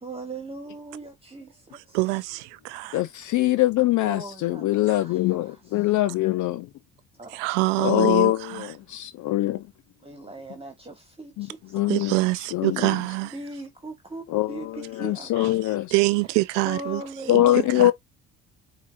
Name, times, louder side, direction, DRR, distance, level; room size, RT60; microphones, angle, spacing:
voice 1, 0.0-2.0 4.0-5.4 7.2-8.0 10.0-12.3 13.3-15.7 16.6-17.8, right 2 dB, 15° right, 1.5 m, -40 dB
voice 2, 1.9-3.0 7.3-8.7 11.9-13.3 15.9-17.0 17.3-17.9, right 23 dB, 80° right, 0.6 m, -25 dB
voice 3, 2.9-5.5 5.7-6.7 7.8-9.6 11.4-11.5 11.7-12.2 12.5-13.0 14.3-15.9 17.3-17.9, left 15 dB, 55° left, 0.6 m, -23 dB
5.8 x 2.9 x 2.5 m
hypercardioid pair, 60°, 36 cm